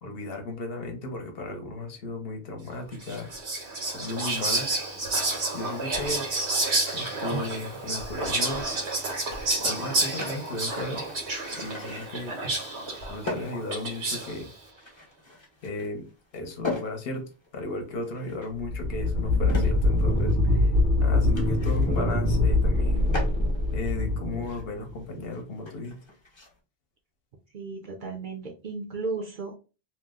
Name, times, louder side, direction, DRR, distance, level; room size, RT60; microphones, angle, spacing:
voice 1, 0.0-3.3 3.9-4.7 5.5-6.2 6.9-8.7 9.6-11.0 11.6-12.3 13.1-14.5 15.6-16.1 16.3-17.2 17.5-20.7 21.0-23.1 23.7-26.0, left 2 dB, 65° left, 4 dB, 1.0 m, -35 dB
Whispering, 3.0-14.4, right 2 dB, 90° right, 1.3 m, -30 dB
sound 1, 7.5-26.6, left 2 dB, 30° left, 0.8 m, -41 dB
sound 2, 18.6-25.0, left 2 dB, 10° left, 0.4 m, -23 dB
voice 2, 27.5-29.6, right 4 dB, 55° right, 1 dB, 0.7 m, -34 dB
2.8 x 2.0 x 3.5 m, 0.34 s
omnidirectional pair, 1.1 m